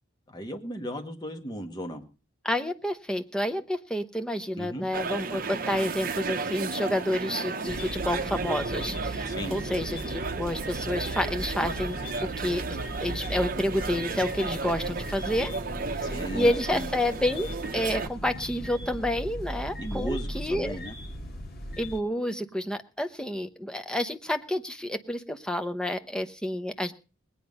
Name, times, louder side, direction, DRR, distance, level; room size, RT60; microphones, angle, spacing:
voice 1, 0.3-2.0 4.6-4.9 9.3-9.6 16.0-16.9 19.8-21.0, right 1 dB, 20° left, 4 dB, 1.7 m, -36 dB
voice 2, 2.4-12.6 13.0-15.5 15.9-17.5 17.7-20.8 21.8-26.9, left 1 dB, 5° left, 8 dB, 0.9 m, -29 dB
sound 1, 4.9-18.1, right 4 dB, 45° right, 0.8 m, -34 dB
sound 2, 7.7-22.0, equal, 50° left, 2.4 m, -37 dB
20.0 x 9.3 x 5.4 m, 0.35 s
head